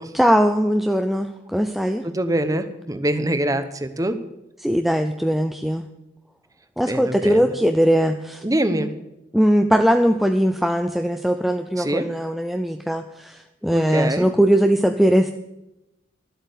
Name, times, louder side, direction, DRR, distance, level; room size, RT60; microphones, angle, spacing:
voice 1, 0.1-2.1 4.6-5.9 6.8-8.4 8.7-8.9 9.3-15.3, equal, ahead, 6 dB, 0.4 m, -20 dB
voice 2, 2.0-4.2 6.8-7.5 8.4-8.9 11.8-12.0 13.7-14.3, right 1 dB, 20° right, 10 dB, 0.9 m, -24 dB
12.5 x 8.2 x 8.0 m, 0.94 s
head